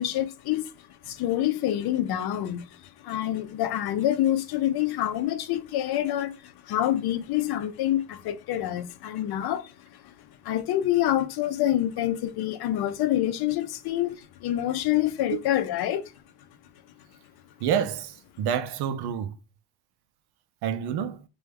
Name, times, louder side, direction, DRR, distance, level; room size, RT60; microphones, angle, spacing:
voice 1, 0.0-16.1, left 12 dB, 65° left, 0.5 m, -27 dB
voice 2, 17.6-19.3 20.6-21.2, right 8 dB, 70° right, 0.6 m, -28 dB
3.1 x 2.3 x 3.3 m
cardioid pair, 120°, 41 cm